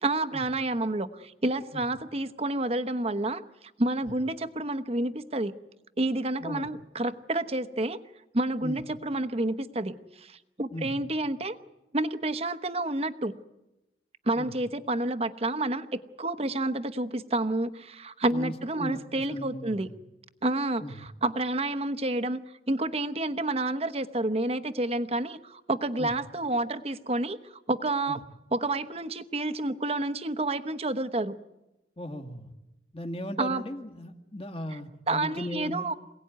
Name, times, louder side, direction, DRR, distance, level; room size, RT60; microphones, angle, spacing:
voice 1, 0.0-3.4 3.8-5.5 6.0-8.0 8.3-11.6 11.9-13.3 14.3-19.9 20.4-22.4 22.7-28.2 28.5-31.4 33.4-33.6 35.1-35.9, right 2 dB, 35° right, 11 dB, 1.0 m, -29 dB
voice 2, 10.7-11.0 14.4-14.5 18.3-19.9 20.8-21.1 26.0-26.1 28.1-28.2 32.0-32.5 32.9-35.9, left 1 dB, 30° left, 6 dB, 2.0 m, -37 dB
27.5 x 18.0 x 9.5 m, 0.98 s
head